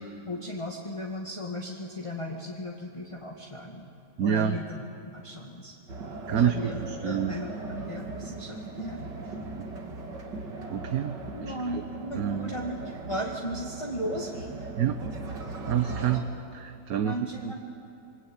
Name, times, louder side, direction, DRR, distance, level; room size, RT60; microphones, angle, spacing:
voice 1, 0.3-3.9 4.2-4.8 5.1-5.7 6.3-9.0 11.3-14.5 17.0-17.6, equal, 20° left, -1 dB, 1.8 m, -36 dB
voice 2, 4.2-4.6 6.3-7.4 10.7-11.2 11.4-11.8 12.2-12.6 14.8-15.0 15.7-17.6, right 9 dB, 65° right, 8 dB, 1.3 m, -28 dB
sound 1, 5.9-16.2, right 3 dB, 85° right, 2.9 m, -38 dB
27.0 x 23.0 x 8.7 m, 2.8 s
omnidirectional pair, 1.8 m